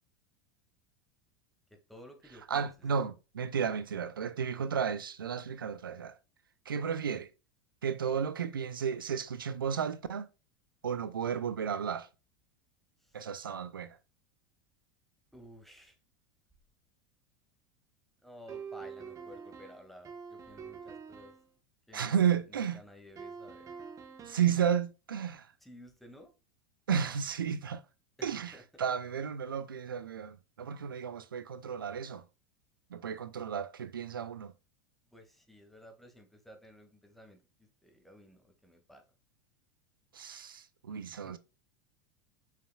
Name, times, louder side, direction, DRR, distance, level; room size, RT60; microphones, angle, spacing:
voice 1, 1.7-2.7 3.7-4.1 13.0-13.2 15.3-16.0 18.2-21.3 21.9-23.7 25.6-26.3 28.2-28.6 35.1-37.4 37.8-39.0 40.9-41.4, equal, ahead, 2.0 m, -54 dB
voice 2, 2.5-6.1 6.7-7.3 7.8-10.3 10.8-12.1 13.1-14.0 21.9-22.8 24.3-25.5 26.9-27.8 28.2-32.2 32.9-34.5 40.1-41.4, right 7 dB, 85° right, 0.5 m, -33 dB
sound 1, 18.5-21.5 23.2-24.6, right 6 dB, 30° right, 1.2 m, -46 dB
6.9 x 5.9 x 2.3 m
hypercardioid pair, 85°, 11 cm